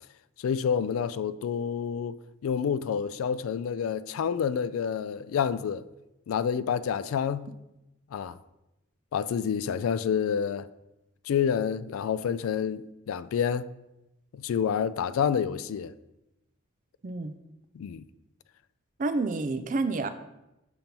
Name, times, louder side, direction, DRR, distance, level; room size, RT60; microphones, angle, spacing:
voice 1, 0.4-2.1 2.4-5.8 6.3-7.5 8.1-8.4 9.1-10.7 11.3-13.7 14.3-15.9 17.7-18.1, left 7 dB, 90° left, 0.3 m, -28 dB
voice 2, 17.0-17.3 19.0-20.1, right 3 dB, 40° right, 0.4 m, -29 dB
7.0 x 3.0 x 5.2 m
head